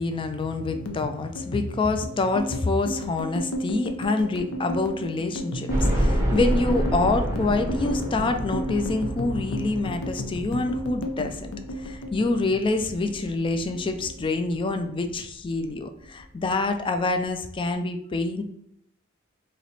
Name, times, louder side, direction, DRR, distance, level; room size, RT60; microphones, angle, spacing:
voice 1, 0.0-18.4, left 3 dB, 25° left, 7 dB, 0.3 m, -26 dB
sound 1, 0.7-13.3 13.5-14.6 14.9-15.2 15.5-16.2, equal, 75° left, 0.6 m, -33 dB
sound 2, 5.7-14.6 15.1-15.2 15.5-15.6 16.8-16.9 17.2-17.3, equal, 15° right, 0.6 m, -29 dB
3.1 x 2.9 x 4.1 m, 0.72 s
head